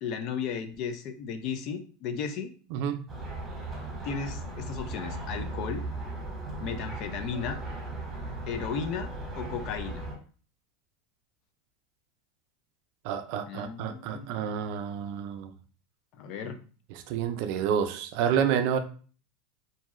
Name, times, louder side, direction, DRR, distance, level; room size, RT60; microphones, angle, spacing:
voice 1, 0.0-2.5 4.0-5.8 6.6-7.6 8.5-9.1 9.4-10.0 13.4-14.5 16.2-16.6, left 6 dB, 50° left, 0.4 m, -35 dB
voice 2, 2.7-3.1 13.0-15.5 16.9-18.8, right 8 dB, 60° right, 0.4 m, -29 dB
sound 1, 3.1-10.1, right 2 dB, 15° right, 1.2 m, -37 dB
2.6 x 2.3 x 3.0 m
supercardioid pair, 130°, 0 cm